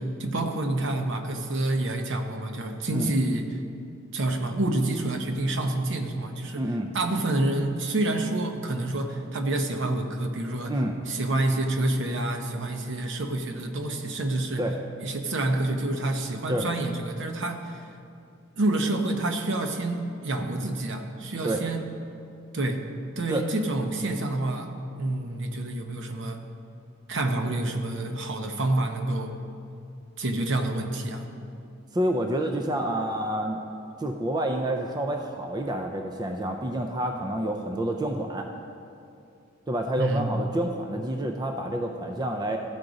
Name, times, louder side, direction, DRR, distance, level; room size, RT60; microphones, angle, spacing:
voice 1, 0.0-3.5 4.1-6.6 6.9-10.8 11.1-14.6 15.0-17.8 18.6-21.9 22.5-22.8 23.2-26.4 27.1-29.3 30.2-31.3 40.0-40.3, right 2 dB, 60° right, 5 dB, 0.7 m, -28 dB
voice 2, 6.6-6.9 10.7-10.9 14.6-14.7 16.5-16.7 21.4-21.6 23.3-23.4 31.9-33.6 34.0-38.5 39.7-42.6, right 1 dB, 20° right, 3 dB, 0.4 m, -28 dB
13.5 x 4.9 x 3.9 m, 2.6 s
head